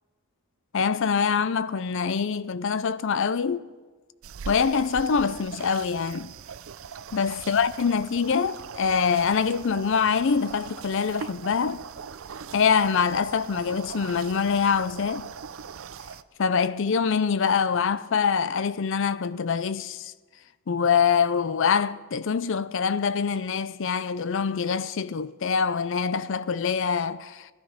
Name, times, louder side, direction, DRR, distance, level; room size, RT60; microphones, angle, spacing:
voice 1, 0.7-3.6 4.5-6.3 7.1-11.8 12.5-15.3 16.4-20.1 20.7-27.5, left 6 dB, 55° left, 0.5 m, -24 dB
sound 1, 4.2-16.2, right 6 dB, 65° right, 0.5 m, -41 dB
17.0 x 13.0 x 5.1 m
head